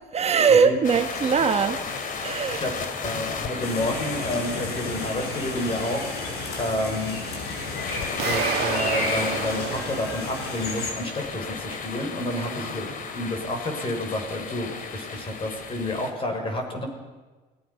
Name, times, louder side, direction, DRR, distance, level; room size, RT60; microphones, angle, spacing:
voice 1, 0.1-1.8 2.2-2.7, right 6 dB, 40° right, 7 dB, 1.3 m, -21 dB
sound 1, 0.8-16.1, left 5 dB, 55° left, 2.7 m, -34 dB
voice 2, 3.0-6.1 6.6-7.2 8.2-16.9, left 1 dB, 30° left, 3 dB, 6.2 m, -30 dB
sound 2, 3.6-10.9, left 2 dB, 75° left, 6.2 m, -32 dB
sound 3, 8.2-11.0, right 11 dB, 75° right, 1.4 m, -31 dB
29.0 x 19.0 x 5.8 m, 1.3 s
cardioid pair, 110°, 17 cm